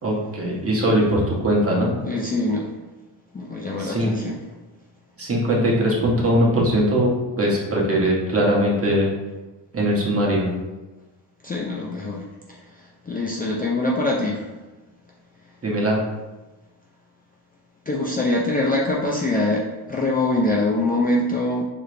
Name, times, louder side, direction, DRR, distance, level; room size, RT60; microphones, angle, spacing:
voice 1, 0.0-1.9 3.8-4.1 5.2-9.1 9.7-10.5 15.6-16.0, equal, 30° right, -4 dB, 1.4 m, -20 dB
voice 2, 2.0-2.7 3.3-4.4 11.4-14.5 17.9-21.6, left 2 dB, 20° left, -3 dB, 0.5 m, -24 dB
4.6 x 3.3 x 3.2 m, 1.1 s
cardioid pair, 100°, 45 cm